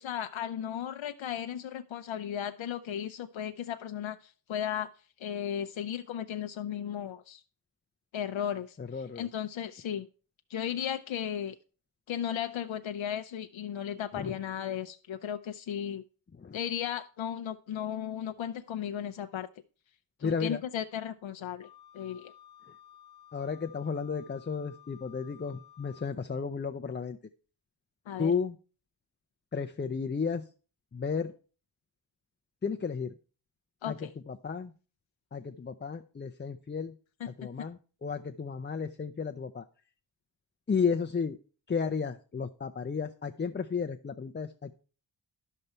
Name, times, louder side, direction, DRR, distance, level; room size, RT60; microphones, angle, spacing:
voice 1, 0.0-4.9 5.2-7.4 8.1-8.8 9.2-10.1 10.5-11.6 12.1-16.0 16.5-19.5 20.2-21.7 21.9-22.3 28.1-28.3 33.8-34.1 37.4-37.5, left 9 dB, 80° left, 8 dB, 0.6 m, -35 dB
voice 2, 8.8-9.3 14.2-14.4 16.3-16.6 20.2-20.6 22.7-22.8 23.3-27.2 28.2-28.6 29.5-30.5 30.9-31.3 32.6-33.1 33.8-34.7 35.3-36.9 37.3-39.6 40.7-41.4 41.7-44.7, left 5 dB, 25° left, 6 dB, 0.5 m, -33 dB
Wind instrument woodwind instrument, 21.6-26.1, left 11 dB, 60° left, 1.1 m, -55 dB
11.0 x 6.7 x 4.4 m, 0.38 s
wide cardioid pair, 95°, 45 cm